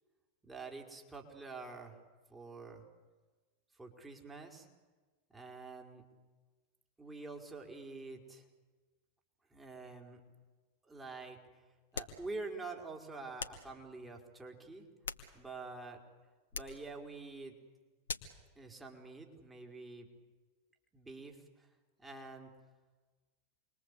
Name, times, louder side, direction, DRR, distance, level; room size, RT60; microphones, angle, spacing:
voice 1, 0.4-2.0 2.3-2.8 3.7-4.7 5.3-6.0 7.0-8.4 9.5-10.2 10.8-11.6 11.9-14.9 15.3-16.0 16.5-17.5 18.5-20.1 20.9-21.7 22.0-22.5, right 3 dB, 10° right, 1 dB, 4.8 m, -47 dB
sound 1, 11.9-12.3 13.4-13.7 14.8-15.7 16.5-16.8 18.1-18.4, left 5 dB, 70° left, 2.3 m, -43 dB
28.5 x 22.5 x 8.4 m, 1.3 s
figure-of-eight pair, 90°, 0 cm